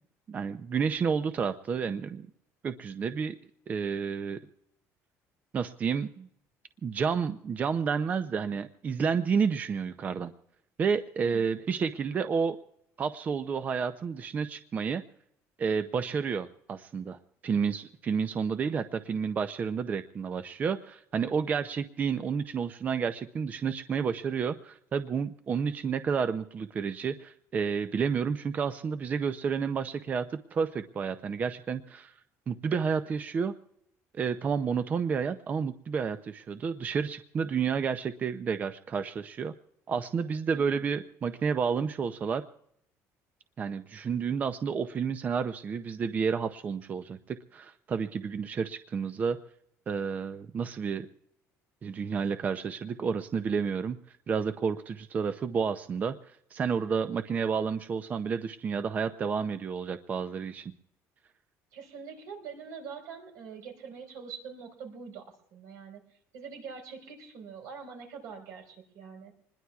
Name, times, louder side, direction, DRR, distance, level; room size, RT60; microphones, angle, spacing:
voice 1, 0.3-2.3 2.6-3.4 3.7-4.4 5.5-6.3 6.8-10.3 10.8-12.6 13.0-15.0 15.6-32.1 32.5-33.5 34.1-39.5 39.9-42.4 43.6-49.4 49.9-51.1 51.8-60.7, right 6 dB, 30° right, 10 dB, 0.5 m, -30 dB
voice 2, 40.5-40.9 61.7-66.0 66.3-69.3, right 6 dB, 80° right, 3 dB, 4.6 m, -44 dB
26.0 x 20.5 x 2.4 m, 0.74 s
cardioid pair, 155°, 6 cm